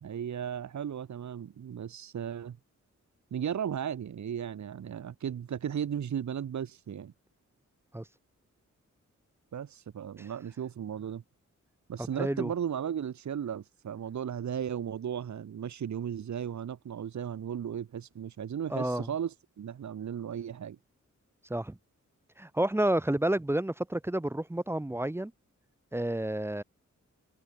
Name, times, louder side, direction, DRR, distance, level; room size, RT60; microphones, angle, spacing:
voice 1, 0.0-2.6 3.3-7.1 9.5-11.2 11.9-20.8, right 8 dB, 65° right, 1.1 m, -35 dB
voice 2, 12.0-12.5 18.7-19.1 21.5-21.8 22.4-25.3 25.9-26.6, right 1 dB, 10° right, 0.6 m, -30 dB
wide cardioid pair, 170°, 31 cm